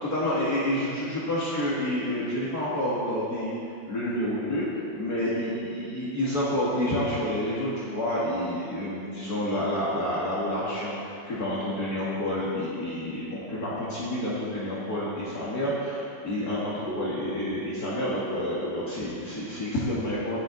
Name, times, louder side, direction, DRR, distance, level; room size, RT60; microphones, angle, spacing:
voice 1, 0.0-4.7 4.9-20.4, left 1 dB, 55° left, -8 dB, 2.4 m, -29 dB
sound 1, 4.1-8.3 16.9-19.0, left 1 dB, 25° left, 3.3 m, -41 dB
15.0 x 11.5 x 4.0 m, 2.5 s
omnidirectional pair, 1.9 m